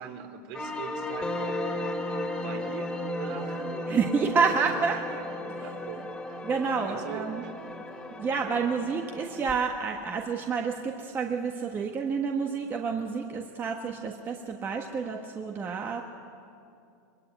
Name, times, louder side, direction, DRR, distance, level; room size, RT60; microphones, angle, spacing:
voice 1, 0.0-1.6 2.4-3.7 4.4-6.4 6.9-7.6, right 7 dB, 55° right, 6 dB, 3.1 m, -42 dB
sound 1, 0.5-9.6, left 1 dB, 5° left, 2.3 m, -35 dB
voice 2, 3.9-5.0 6.4-7.4 8.2-16.0, right 5 dB, 20° right, 2 dB, 1.4 m, -29 dB
23.5 x 22.5 x 9.2 m, 2.5 s
supercardioid pair, 150°, 10 cm